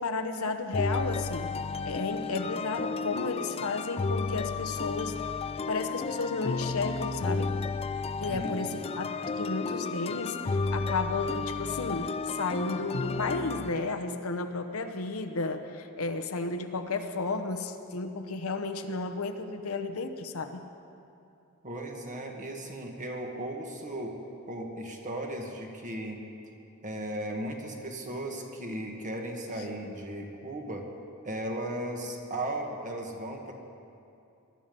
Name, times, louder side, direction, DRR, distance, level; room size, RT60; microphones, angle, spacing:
voice 1, 0.0-1.5 1.8-5.2 5.7-7.6 8.2-20.6, left 3 dB, 70° left, 6 dB, 1.0 m, -33 dB
sound 1, 0.7-13.7, left 4 dB, 25° left, 0.3 m, -33 dB
voice 2, 21.6-24.2 24.5-26.2 26.8-30.9 31.2-33.5, right 1 dB, 35° right, 1 dB, 1.8 m, -36 dB
21.0 x 12.5 x 5.4 m, 2.6 s
head